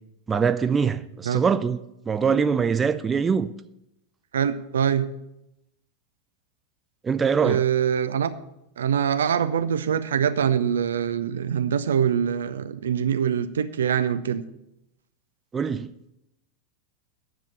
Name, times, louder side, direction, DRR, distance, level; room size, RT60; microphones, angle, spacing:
voice 1, 0.3-1.8 2.1-3.5 7.0-7.6 15.5-15.9, right 6 dB, 15° right, 0.5 m, -23 dB
voice 2, 4.3-5.1 7.4-8.3 8.8-14.4, right 8 dB, 65° right, 0.6 m, -24 dB
10.0 x 7.5 x 7.0 m
figure-of-eight pair, 90°, 0 cm